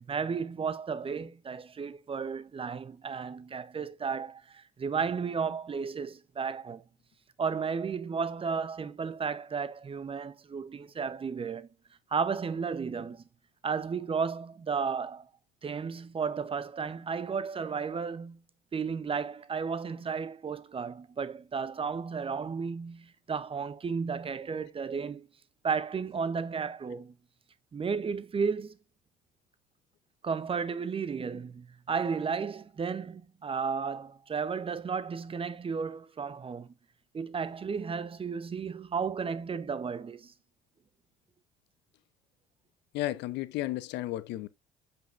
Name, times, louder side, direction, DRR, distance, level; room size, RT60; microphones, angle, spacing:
voice 1, 0.0-6.8 7.4-11.7 12.1-13.2 13.6-15.3 15.6-18.4 18.7-25.3 25.6-27.1 27.7-28.7 30.2-36.7 37.1-40.3, right 5 dB, 30° right, 0.8 m, -33 dB
voice 2, 42.9-44.5, left 15 dB, 65° left, 0.6 m, -33 dB
7.8 x 5.4 x 2.5 m
hypercardioid pair, 65°, 19 cm